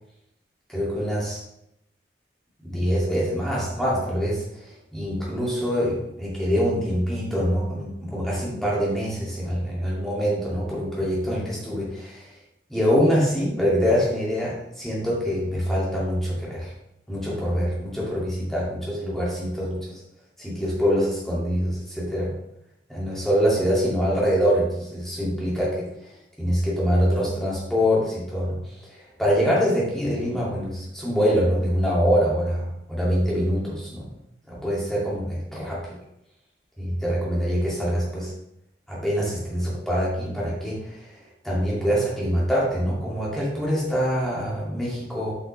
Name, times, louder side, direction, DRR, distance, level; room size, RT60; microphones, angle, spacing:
voice 1, 0.7-1.4 2.6-12.3 12.7-16.7 17.1-20.0 20.4-22.3 22.9-26.1 26.4-34.1 34.5-36.0 36.8-38.3 38.9-41.1 41.4-45.3, equal, ahead, -6 dB, 2.3 m, -24 dB
7.8 x 5.9 x 3.3 m, 0.81 s
head